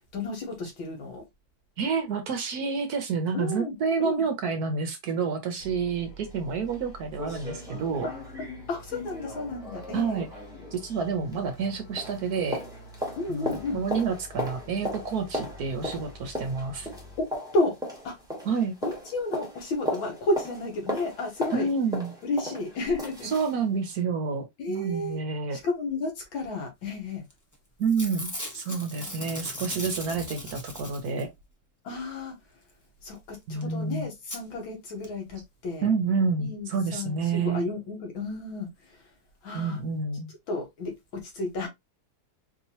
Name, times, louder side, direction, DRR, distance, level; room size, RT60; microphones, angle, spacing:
voice 1, 0.1-1.2 3.3-4.2 8.0-8.1 8.7-10.2 13.2-13.8 17.2-17.8 18.0-18.2 18.8-21.7 22.2-23.3 24.6-25.2 25.5-27.2 31.8-32.4 33.0-35.9 36.4-39.0 39.4-39.8 40.5-41.7, left 2 dB, 85° left, 2.2 m, -32 dB
voice 2, 1.8-8.1 9.9-10.3 10.7-12.6 13.3-16.9 18.5-18.8 21.5-22.1 23.2-25.6 27.8-31.3 33.5-34.1 35.8-37.7 39.5-40.3, right 5 dB, 65° right, 1.0 m, -29 dB
sound 1, 5.6-17.2, left 1 dB, 60° left, 1.6 m, -48 dB
sound 2, 6.3-6.4 6.7-6.8 7.1-11.7 12.0-23.6 23.9-24.0, equal, ahead, 1.0 m, -37 dB
Packing tape duct tape / Tearing, 27.3-27.5 27.8-31.4 33.3-33.4 33.6-33.7 34.3-34.4 35.0-35.1 35.3-35.4, left 1 dB, 20° left, 0.5 m, -38 dB
4.6 x 2.9 x 2.7 m
omnidirectional pair, 2.1 m